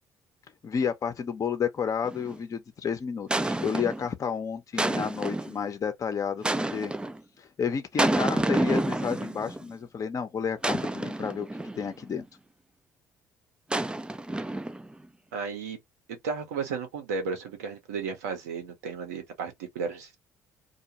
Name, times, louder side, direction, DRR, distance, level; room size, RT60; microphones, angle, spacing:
voice 1, 0.6-6.9 7.4-11.5 11.8-12.2, left 6 dB, 40° left, 0.7 m, -31 dB
sound 1, 2.0-2.4 3.3-4.1 4.8-5.6 6.4-7.2 8.0-9.6 10.6-11.9 13.7-14.9, right 2 dB, 10° right, 0.4 m, -29 dB
voice 2, 15.3-15.8 16.1-20.2, right 5 dB, 80° right, 0.9 m, -34 dB
2.3 x 2.2 x 2.8 m
hypercardioid pair, 55°, 8 cm